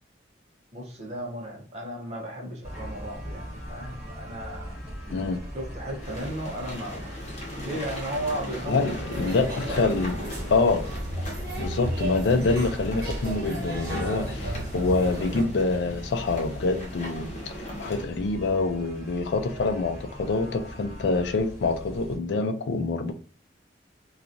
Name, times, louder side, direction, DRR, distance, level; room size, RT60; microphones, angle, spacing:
voice 1, 0.7-4.8 5.5-8.9 9.4-10.1, right 1 dB, 35° right, 0.8 m, -35 dB
sound 1, 2.6-22.2, equal, 10° right, 1.1 m, -40 dB
sound 2, 6.0-18.0, equal, 35° left, 0.7 m, -40 dB
voice 2, 8.7-10.1 10.5-10.8 11.6-17.5 17.8-23.1, left 3 dB, 70° left, 0.4 m, -26 dB
sound 3, 9.1-15.4, right 1 dB, 55° right, 1.0 m, -33 dB
2.8 x 2.4 x 2.5 m
head